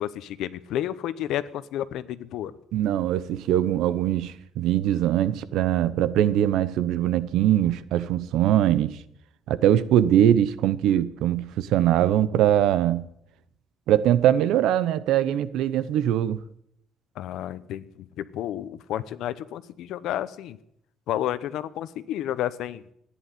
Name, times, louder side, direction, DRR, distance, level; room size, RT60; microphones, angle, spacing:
voice 1, 0.0-2.5 17.2-20.6 21.1-22.8, left 12 dB, 75° left, 0.9 m, -31 dB
voice 2, 2.7-9.0 9.5-13.1 13.9-16.4, right 11 dB, 80° right, 1.0 m, -22 dB
14.5 x 10.5 x 9.4 m
cardioid pair, 150°, 0 cm